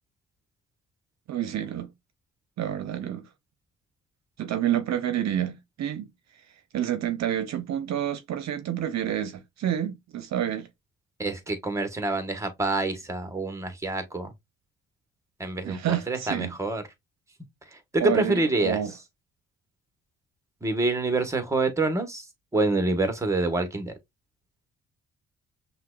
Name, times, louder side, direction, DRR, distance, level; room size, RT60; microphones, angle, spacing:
voice 1, 1.3-1.9 2.6-3.3 4.4-6.1 6.7-10.7 15.6-16.5 18.0-18.9, right 10 dB, 60° right, 0.7 m, -29 dB
voice 2, 11.2-14.3 15.4-16.8 17.9-18.8 20.6-22.2 22.5-23.9, right 2 dB, 10° right, 1.0 m, -26 dB
5.6 x 2.3 x 2.3 m
cardioid pair, 90°, 30 cm